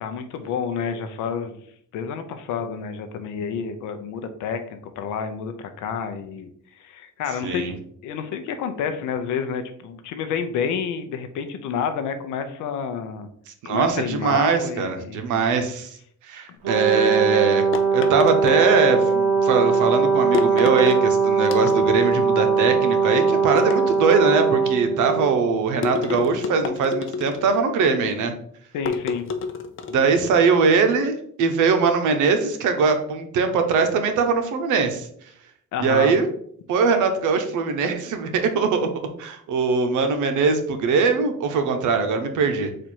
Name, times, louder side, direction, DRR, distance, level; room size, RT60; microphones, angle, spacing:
voice 1, 0.0-1.6 1.9-6.5 6.8-13.3 13.7-15.4 16.5-16.6 28.7-29.2 35.7-36.1, left 6 dB, 90° left, 8 dB, 0.6 m, -29 dB
voice 2, 7.4-7.7 13.6-15.9 16.3-28.3 29.9-35.1 35.8-36.3 36.7-38.9 39.2-42.7, right 5 dB, 80° right, 7 dB, 0.8 m, -21 dB
Brass instrument, 16.6-25.4, right 5 dB, 60° right, 0.9 m, -20 dB
sound 1, 17.7-19.1 20.3-21.0 21.4-22.1 23.6-24.5 25.8-27.6 28.8-30.1, left 5 dB, 45° left, 0.5 m, -29 dB
4.3 x 2.5 x 4.4 m, 0.64 s
cardioid pair, 90°, 30 cm